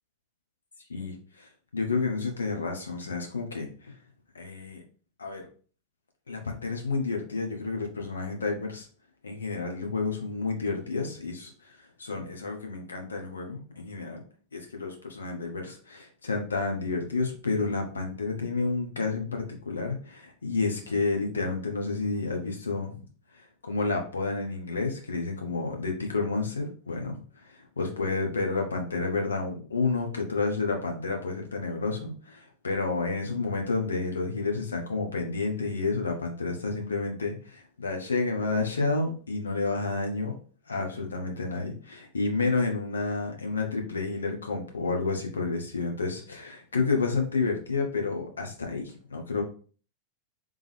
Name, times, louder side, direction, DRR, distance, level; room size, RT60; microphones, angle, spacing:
voice 1, 0.9-3.9 4.3-4.8 5.2-5.5 6.3-8.9 9.2-14.2 14.5-23.0 23.3-40.4 40.7-49.4, left 3 dB, 75° left, 3 dB, 1.0 m, -30 dB
3.6 x 3.6 x 3.3 m, 0.40 s
figure-of-eight pair, 90°, 0 cm